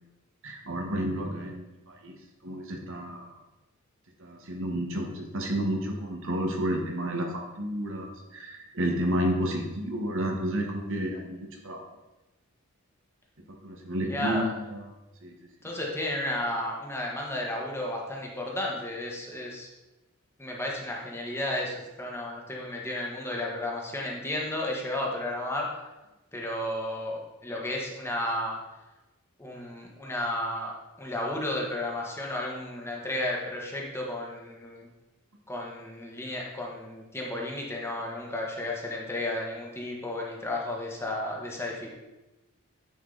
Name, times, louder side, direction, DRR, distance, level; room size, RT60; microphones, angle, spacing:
voice 1, 0.4-2.1 2.4-3.3 4.2-11.8 13.6-14.8 15.2-15.3, equal, 65° right, 1 dB, 1.3 m, -31 dB
voice 2, 14.0-14.5 15.6-19.7 20.4-25.7 26.3-28.6 29.4-34.9 35.5-41.9, left 1 dB, 10° left, -2 dB, 1.3 m, -33 dB
9.9 x 5.0 x 4.0 m, 1.0 s
head